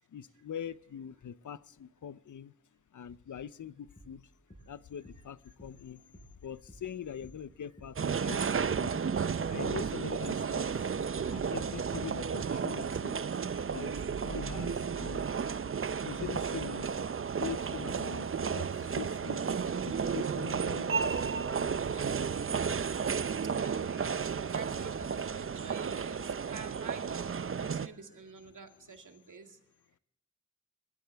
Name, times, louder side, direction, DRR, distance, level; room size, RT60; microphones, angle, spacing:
voice 1, 0.1-2.5 2.9-4.2 4.7-9.0 9.5-10.6 11.3-13.2 13.7-13.9 14.2-15.3 16.0-16.9 17.3-19.4 19.8-20.9, left 9 dB, 75° left, 18 dB, 0.6 m, -43 dB
sound 1, 4.0-12.7, right 1 dB, 25° left, 7.8 m, -56 dB
sound 2, 8.0-27.9, right 6 dB, 45° right, 0.6 m, -33 dB
voice 2, 19.3-20.1 20.6-20.8 22.2-22.8 23.3-29.6, right 5 dB, 75° right, 4 dB, 2.2 m, -49 dB
21.0 x 14.0 x 3.4 m, 0.74 s
cardioid pair, 45°, 31 cm